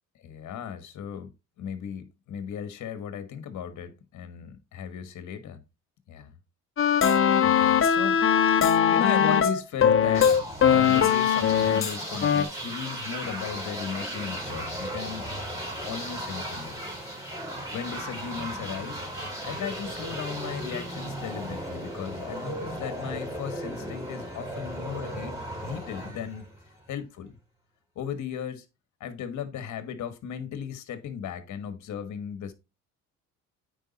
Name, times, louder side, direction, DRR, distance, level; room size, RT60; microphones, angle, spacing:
voice 1, 0.2-1.3 1.6-5.6 6.1-6.4 7.4-8.2 8.5-8.6 8.9-10.4 10.7-15.3 15.9-17.0 17.7-19.0 19.4-26.5 26.9-27.3 27.9-28.6 29.0-32.5, left 8 dB, 70° left, 1.4 m, -36 dB
sound 1, 6.8-12.0 12.2-12.4, left 8 dB, 45° left, 1.2 m, -21 dB
sound 2, 10.1-26.9, right 1 dB, 10° right, 4.4 m, -36 dB
9.1 x 4.8 x 4.0 m
cardioid pair, 90°, 30 cm